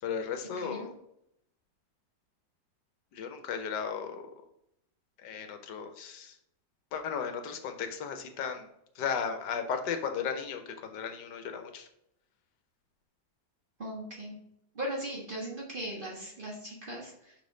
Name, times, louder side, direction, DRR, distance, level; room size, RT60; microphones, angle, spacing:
voice 1, 0.0-0.9 3.1-4.2 5.2-6.4 6.9-8.7 9.0-11.9, left 6 dB, 75° left, 6 dB, 1.3 m, -35 dB
voice 2, 13.8-14.4 14.7-17.3, right 1 dB, 30° right, -3 dB, 1.3 m, -38 dB
5.4 x 5.3 x 3.8 m, 0.78 s
omnidirectional pair, 2.0 m